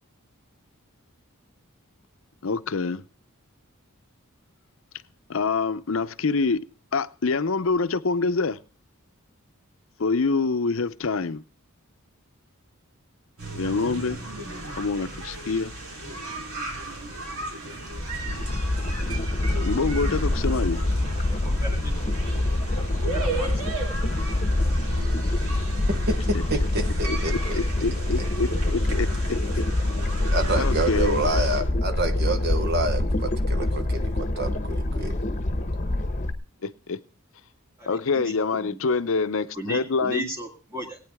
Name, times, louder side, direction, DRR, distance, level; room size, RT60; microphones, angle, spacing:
voice 1, 2.4-3.0 5.3-6.6 6.9-8.6 10.0-11.4 13.5-14.2 14.8-15.7 19.7-20.8 27.1-29.1 30.5-31.2 36.6-37.0 37.9-40.3, left 4 dB, 65° left, 13 dB, 0.6 m, -26 dB
sound 1, 13.4-31.6, right 2 dB, 85° right, 3.5 m, -36 dB
sound 2, 17.9-36.3, left 1 dB, 35° left, 1.0 m, -25 dB
voice 2, 21.2-22.1 22.7-23.5 37.8-38.3 38.6-38.8 39.5-41.0, right 1 dB, 15° right, -6 dB, 1.9 m, -36 dB
voice 3, 25.9-27.6 30.3-35.2, right 2 dB, 50° right, 8 dB, 1.0 m, -28 dB
19.0 x 9.2 x 3.5 m, 0.39 s
head